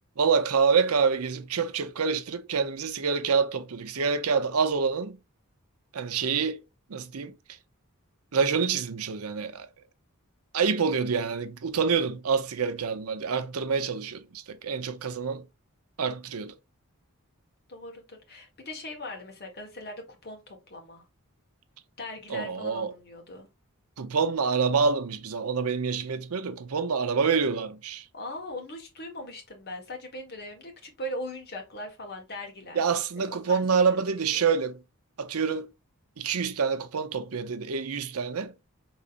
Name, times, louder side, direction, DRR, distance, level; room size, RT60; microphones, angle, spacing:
voice 1, 0.2-5.2 5.9-6.6 6.9-7.3 8.3-9.7 10.5-15.4 16.0-16.5 22.3-22.9 24.0-28.0 32.7-34.8 35.2-35.7 36.2-38.5, right 5 dB, 85° right, 0.7 m, -27 dB
voice 2, 17.7-21.0 22.0-23.5 28.1-32.8 33.2-33.6 34.3-34.4, left 1 dB, 50° left, 1.6 m, -40 dB
5.4 x 3.9 x 2.5 m
head